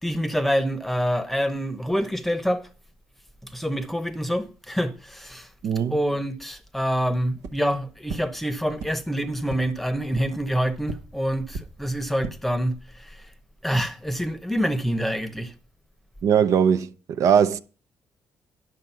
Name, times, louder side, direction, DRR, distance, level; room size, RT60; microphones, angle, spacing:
voice 1, 0.0-2.7 3.4-5.5 5.9-13.2 13.6-15.5, equal, 5° left, 0.9 m, -26 dB
voice 2, 5.6-6.0 16.2-17.6, right 8 dB, 65° right, 0.6 m, -20 dB
sound 1, 7.4-7.5 8.1-8.2 8.8-8.9 9.5-9.6 10.1-10.2 10.8-10.9 11.5-11.6 12.1-12.3, right 4 dB, 85° right, 1.2 m, -32 dB
10.5 x 6.5 x 5.6 m
cardioid pair, 125°, 6 cm